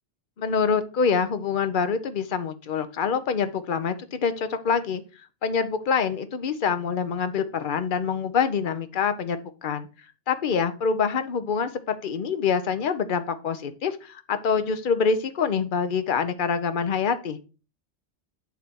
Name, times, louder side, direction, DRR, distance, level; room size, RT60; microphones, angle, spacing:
voice 1, 0.4-5.0 5.4-9.9 10.3-17.4, left 6 dB, 50° left, 10 dB, 0.9 m, -25 dB
8.4 x 3.3 x 5.8 m, 0.34 s
omnidirectional pair, 1.2 m